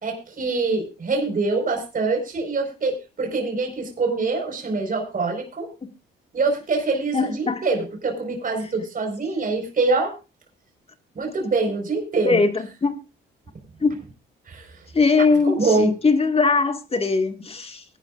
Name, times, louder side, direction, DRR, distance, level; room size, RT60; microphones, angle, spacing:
voice 1, 0.0-5.7 6.3-10.1 11.2-12.4 14.5-14.8 15.5-16.0, right 3 dB, 45° right, 2 dB, 5.0 m, -24 dB
voice 2, 7.1-7.6 12.2-12.5 12.8-12.9 13.8-13.9 14.9-17.8, left 4 dB, 30° left, 7 dB, 2.0 m, -20 dB
22.5 x 11.5 x 2.6 m, 0.29 s
cardioid pair, 90°, 20 cm